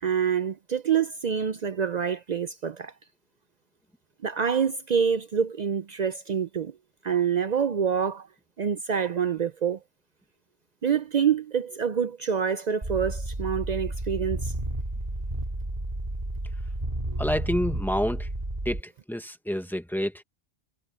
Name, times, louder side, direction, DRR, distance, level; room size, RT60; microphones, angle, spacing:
voice 1, 0.0-2.9 4.2-6.7 7.0-8.3 8.6-9.8 10.8-14.5 17.1-17.2, right 7 dB, 50° right, 0.5 m, -26 dB
sound 1, 12.8-18.8, right 1 dB, 35° right, 2.6 m, -32 dB
voice 2, 17.2-18.3 18.6-20.2, equal, ahead, 1.2 m, -28 dB
omnidirectional pair, 1.1 m